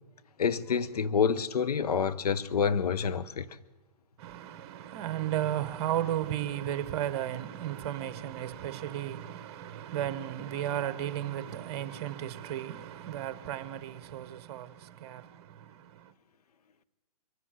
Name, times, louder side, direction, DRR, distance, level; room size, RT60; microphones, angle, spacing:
voice 1, 0.4-3.5, left 6 dB, 85° left, 0.8 m, -27 dB
voice 2, 4.2-16.1, right 11 dB, 45° right, 1.1 m, -34 dB
23.0 x 8.2 x 7.6 m
hypercardioid pair, 140°, 19 cm